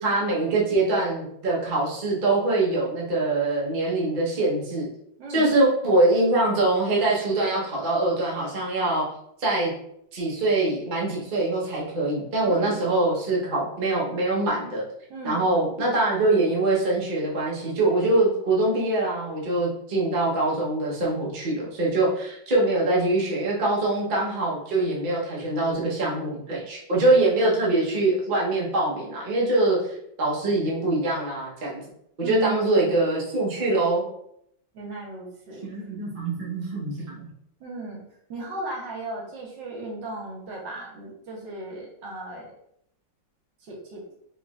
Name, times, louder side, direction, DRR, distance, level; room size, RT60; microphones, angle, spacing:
voice 1, 0.0-4.9 5.3-9.0 9.4-9.7 10.1-14.8 15.2-29.8 30.2-31.8 32.2-34.1 35.6-37.2, right 2 dB, 40° right, -4 dB, 0.7 m, -23 dB
voice 2, 5.2-5.5 12.5-12.9 15.1-15.6 32.2-32.9 34.7-35.6 37.6-38.0 38.3-42.5 43.6-44.0, right 2 dB, 75° right, -2 dB, 1.6 m, -36 dB
4.5 x 3.1 x 2.3 m, 0.73 s
omnidirectional pair, 2.1 m